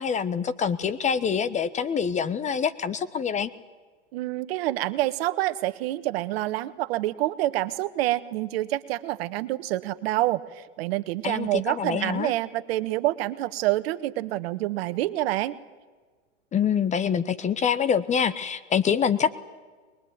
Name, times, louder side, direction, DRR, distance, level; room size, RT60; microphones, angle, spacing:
voice 1, 0.0-3.5 11.2-12.3 16.5-19.3, left 7 dB, 20° left, 14 dB, 1.1 m, -25 dB
voice 2, 4.1-15.6, right 16 dB, 55° right, 13 dB, 1.5 m, -27 dB
23.0 x 21.5 x 9.5 m, 1.4 s
hypercardioid pair, 120°, 36 cm